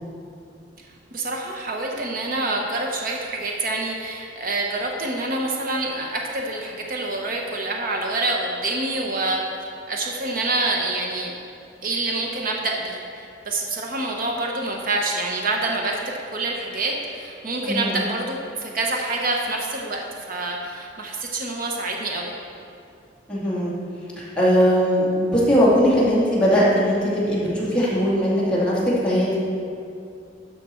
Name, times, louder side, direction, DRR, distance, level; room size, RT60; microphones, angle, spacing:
voice 1, 1.1-9.4 9.9-11.3 11.8-16.0 16.3-22.4, right 2 dB, 50° right, 1 dB, 0.9 m, -26 dB
voice 2, 17.6-18.0 23.3-23.7 24.2-29.4, equal, 5° left, -8 dB, 2.2 m, -20 dB
12.0 x 6.0 x 4.4 m, 2.5 s
head